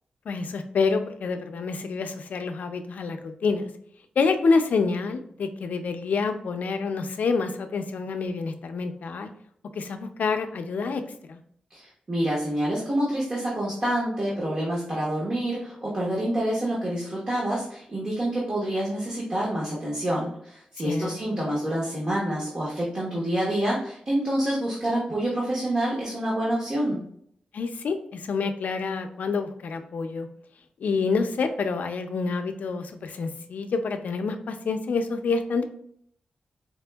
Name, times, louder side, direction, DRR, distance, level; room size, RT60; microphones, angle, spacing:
voice 1, 0.3-3.7 4.2-9.3 9.7-11.0 11.3-11.4 20.8-21.5 27.5-30.3 30.8-35.6, left 4 dB, 75° left, 7 dB, 0.4 m, -27 dB
voice 2, 11.7-27.0, right 1 dB, 35° right, -6 dB, 0.9 m, -27 dB
4.3 x 2.6 x 2.3 m, 0.65 s
wide cardioid pair, 125°, 3 cm